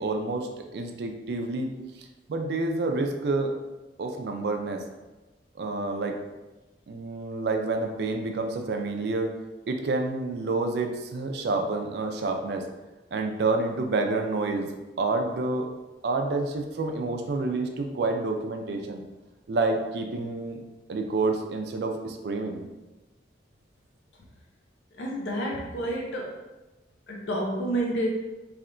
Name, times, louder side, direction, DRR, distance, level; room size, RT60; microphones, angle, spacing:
voice 1, 0.0-1.7 2.3-3.5 4.0-4.8 5.6-6.2 6.9-9.3 9.7-12.7 13.1-15.7 16.0-19.0 19.5-20.6 20.9-22.6, right 3 dB, 65° right, 4 dB, 0.4 m, -28 dB
voice 2, 25.0-26.4 27.1-28.1, right 1 dB, 85° left, -1 dB, 0.5 m, -29 dB
3.3 x 2.8 x 2.5 m, 1.1 s
head